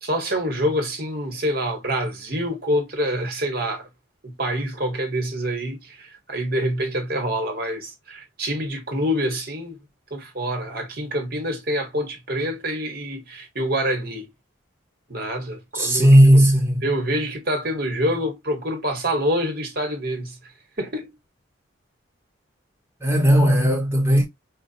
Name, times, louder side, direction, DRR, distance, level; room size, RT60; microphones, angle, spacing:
voice 1, 0.0-3.9 4.2-9.8 10.1-14.3 15.1-16.4 16.8-20.4 20.8-21.1, equal, 50° right, 1.2 m, -26 dB
voice 2, 15.7-16.8 23.0-24.3, equal, 10° right, 1.1 m, -15 dB
4.4 x 2.3 x 2.6 m
head